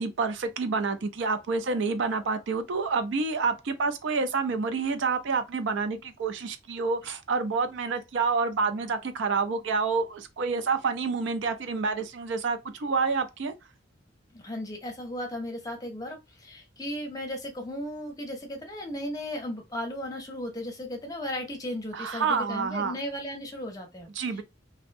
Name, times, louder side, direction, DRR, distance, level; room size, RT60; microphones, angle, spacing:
voice 1, 0.0-13.5 21.9-23.0 24.2-24.4, right 4 dB, 65° right, 0.4 m, -28 dB
voice 2, 14.3-24.4, left 1 dB, 20° left, 0.7 m, -36 dB
2.6 x 2.1 x 2.5 m
head